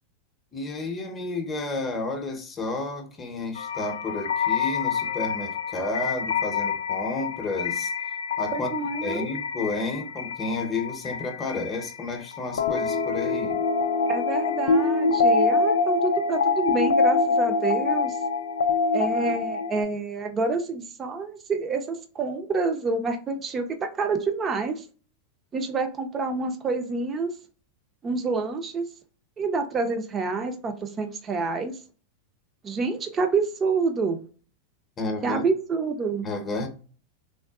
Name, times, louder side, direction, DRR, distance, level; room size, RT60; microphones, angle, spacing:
voice 1, 0.5-7.9 8.4-8.7 9.0-13.6 35.0-35.5 36.2-36.7, left 2 dB, 20° left, 0.8 m, -31 dB
sound 1, 3.6-19.8, left 4 dB, 85° left, 0.3 m, -25 dB
voice 2, 8.5-9.3 14.1-18.2 18.9-24.9 25.5-27.3 28.0-28.9 29.4-31.8 32.6-34.3 35.2-36.3, right 4 dB, 25° right, 0.6 m, -28 dB
3.6 x 2.2 x 2.3 m
hypercardioid pair, 125°, 0 cm